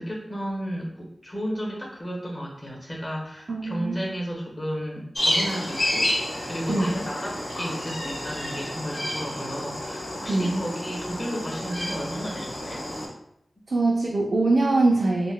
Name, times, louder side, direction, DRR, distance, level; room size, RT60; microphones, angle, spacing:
voice 1, 0.0-6.1 6.4-12.9, equal, 25° left, -3 dB, 1.0 m, -33 dB
voice 2, 3.5-4.0 6.7-7.0 10.3-10.6 13.7-15.3, right 2 dB, 60° right, -2 dB, 0.4 m, -23 dB
sound 1, 5.1-13.1, left 1 dB, 55° left, 0.8 m, -30 dB
3.9 x 2.1 x 2.2 m, 0.75 s
wide cardioid pair, 100°, 0 cm